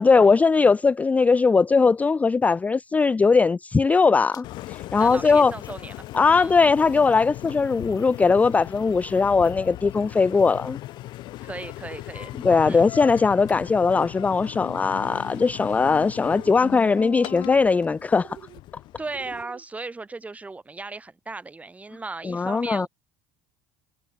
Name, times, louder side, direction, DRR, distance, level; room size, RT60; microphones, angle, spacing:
voice 1, 0.0-5.5 6.1-10.8 12.4-18.4 22.2-22.9, left 4 dB, 15° left, 0.5 m, -20 dB
sound 1, 4.3-4.4 5.0-12.4 12.7-14.1 14.4-14.5, left 9 dB, 45° left, 5.6 m, -56 dB
Engine, 4.4-19.4, left 17 dB, 60° left, 3.9 m, -38 dB
voice 2, 5.0-6.1 6.4-6.7 11.4-12.3 12.7-12.9 19.0-22.9, right 3 dB, 15° right, 5.4 m, -37 dB
sound 2, 15.0-15.5 16.2-16.7 17.0-17.5 18.1-18.6 19.1-19.6, right 13 dB, 50° right, 1.9 m, -46 dB
supercardioid pair, 90°, 9 cm